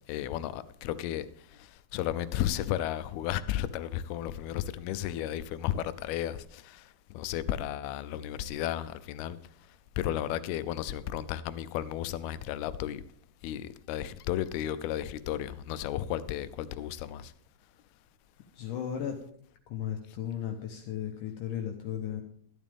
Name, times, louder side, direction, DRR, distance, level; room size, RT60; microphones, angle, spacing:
voice 1, 0.1-1.3 1.5-9.4 10.0-13.0 13.4-17.3, left 12 dB, 90° left, 2.5 m, -33 dB
voice 2, 18.5-19.2 19.7-22.2, left 9 dB, 70° left, 2.1 m, -35 dB
12.5 x 11.0 x 3.5 m
omnidirectional pair, 4.4 m